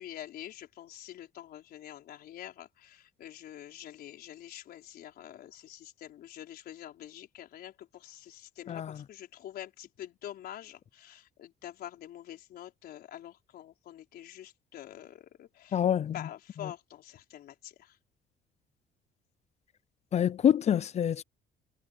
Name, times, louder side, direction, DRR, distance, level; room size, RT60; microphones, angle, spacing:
voice 1, 0.0-15.8 16.1-18.0, left 12 dB, 65° left, 4.6 m, -46 dB
voice 2, 15.7-16.2 20.1-21.2, left 9 dB, 40° left, 0.6 m, -26 dB
cardioid pair, 110°, 17 cm